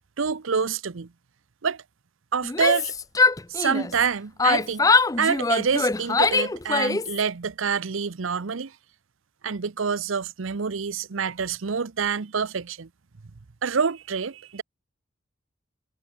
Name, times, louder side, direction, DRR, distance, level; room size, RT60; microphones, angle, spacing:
voice 1, 0.2-1.1 1.6-1.8 2.3-2.9 3.5-4.9 5.2-8.7 9.4-12.9 13.6-14.6, right 6 dB, 80° right, 0.7 m, -27 dB
Yell, 2.4-4.1 4.4-7.2, left 4 dB, 15° left, 0.5 m, -22 dB
head